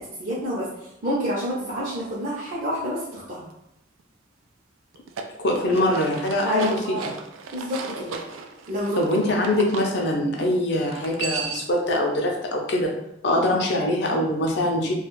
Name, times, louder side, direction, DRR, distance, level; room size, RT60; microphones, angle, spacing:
voice 1, 0.2-0.7 1.0-3.5 6.4-7.1 7.5-8.1 8.7-9.1 9.5-9.6, equal, 45° right, -7 dB, 0.6 m, -28 dB
sound 1, 4.9-9.9 10.9-11.8, right 4 dB, 85° right, 0.3 m, -35 dB
voice 2, 5.4-7.0 9.0-12.9 13.2-14.9, left 1 dB, 60° left, 0 dB, 0.6 m, -23 dB
2.4 x 2.3 x 3.0 m, 0.82 s
head